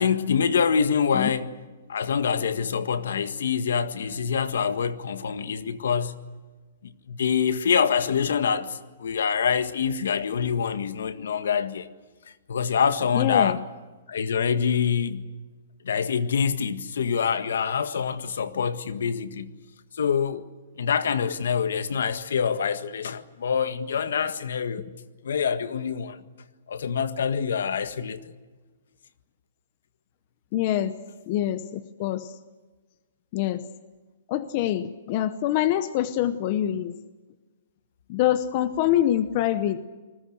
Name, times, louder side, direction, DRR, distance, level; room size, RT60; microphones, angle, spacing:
voice 1, 0.0-1.6 1.9-6.2 6.8-11.9 12.5-13.6 14.1-15.3 15.8-19.5 20.0-20.5 20.8-24.8 25.2-26.2 26.7-28.2, left 7 dB, 70° left, 1.7 m, -25 dB
voice 2, 13.1-13.6 30.5-30.9 31.3-32.3 33.3-33.6 34.3-36.9 38.1-39.8, left 12 dB, 25° left, 0.8 m, -25 dB
28.0 x 20.5 x 7.9 m
hypercardioid pair, 175°, 0 cm